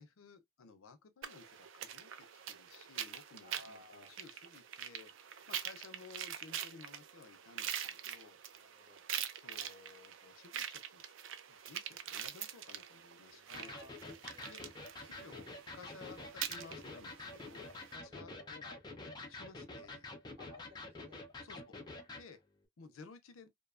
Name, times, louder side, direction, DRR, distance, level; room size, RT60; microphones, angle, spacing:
voice 1, 0.0-5.1 5.5-8.4 9.1-11.1 11.5-13.8 14.4-14.6 15.0-18.6 19.0-20.1 21.4-21.8 22.1-22.4 22.8-23.5, left 4 dB, 85° left, 0.5 m, -56 dB
sound 1, 1.2-18.0, right 9 dB, 70° right, 0.4 m, -45 dB
voice 2, 3.4-4.1 8.6-9.0 13.5-14.5 18.1-18.8 20.4-21.3, left 2 dB, 30° right, 1.3 m, -58 dB
Electric guitar, 13.5-22.3, left 2 dB, 20° left, 0.5 m, -48 dB
2.6 x 2.3 x 2.3 m
head